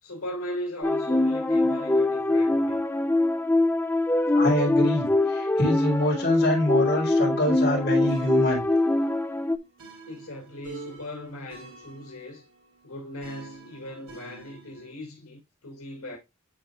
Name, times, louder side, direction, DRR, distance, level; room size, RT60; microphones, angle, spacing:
voice 1, 0.0-2.8 10.1-12.4 12.8-16.2, left 1 dB, 90° left, 2.5 m, -38 dB
sound 1, 0.8-9.6, left 2 dB, 10° left, 0.4 m, -23 dB
voice 2, 4.3-8.6, left 1 dB, 45° left, 4.7 m, -25 dB
sound 2, 8.1-14.9, right 3 dB, 90° right, 3.8 m, -47 dB
11.5 x 4.4 x 2.4 m
head